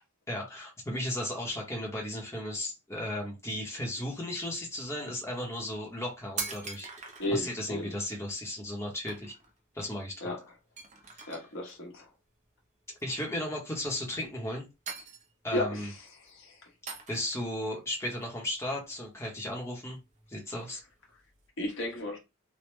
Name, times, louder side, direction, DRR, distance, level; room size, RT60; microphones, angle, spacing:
voice 1, 0.3-6.9 7.3-9.3 9.7-10.2 11.1-11.3 13.0-14.7 15.4-15.9 17.1-20.0 20.3-20.8, left 1 dB, 15° left, 0.8 m, -35 dB
sound 1, 4.0-4.1 4.6-4.9 5.7-5.8 6.0-7.5 8.1-8.2 8.6-8.8 9.1-9.6 9.9-10.0 10.3-10.4 10.8-11.7 12.8-13.3 13.8-14.5 14.9-15.6 16.0-16.3 16.9-17.5 17.9-19.2 19.5-21.5, right 5 dB, 35° right, 0.6 m, -43 dB
voice 2, 7.2-7.9 10.2-10.5 11.3-12.1 15.5-16.7 21.6-22.2, left 1 dB, 60° left, 1.1 m, -34 dB
3.2 x 2.1 x 3.1 m
head